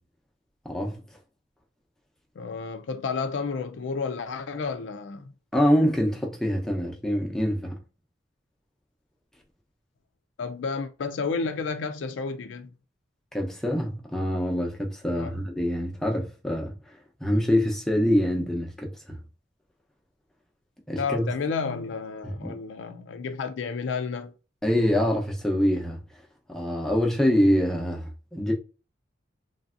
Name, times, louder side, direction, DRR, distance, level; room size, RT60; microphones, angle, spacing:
voice 1, 0.6-1.0 5.5-7.8 13.3-16.7 17.2-19.2 20.9-21.3 22.2-22.6 24.6-26.0 26.5-28.5, equal, 5° left, 0.7 m, -25 dB
voice 2, 2.4-5.2 10.4-12.7 15.1-15.4 21.0-24.3, left 5 dB, 80° left, 0.4 m, -31 dB
3.3 x 2.6 x 2.4 m
head